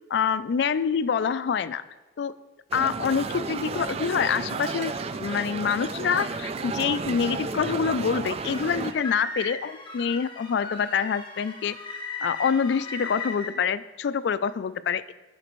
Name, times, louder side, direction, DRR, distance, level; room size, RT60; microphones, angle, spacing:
voice 1, 0.1-1.8 2.2-2.3 2.7-11.8 12.2-15.1, left 6 dB, 65° left, 15 dB, 0.3 m, -26 dB
sound 1, 2.7-8.9, right 4 dB, 35° right, 0.3 m, -32 dB
sound 2, 8.4-13.5, left 2 dB, 25° left, 1.3 m, -37 dB
13.0 x 5.1 x 3.1 m, 1.2 s
head